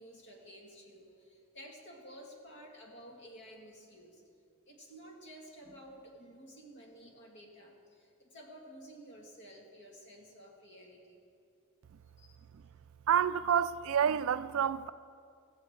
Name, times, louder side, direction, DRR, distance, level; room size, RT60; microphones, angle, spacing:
voice 1, 0.0-4.2 4.7-11.2 12.2-12.4, equal, 55° left, 2.3 m, -53 dB
voice 2, 13.1-14.9, right 8 dB, 65° right, 0.4 m, -28 dB
16.0 x 15.5 x 3.8 m
head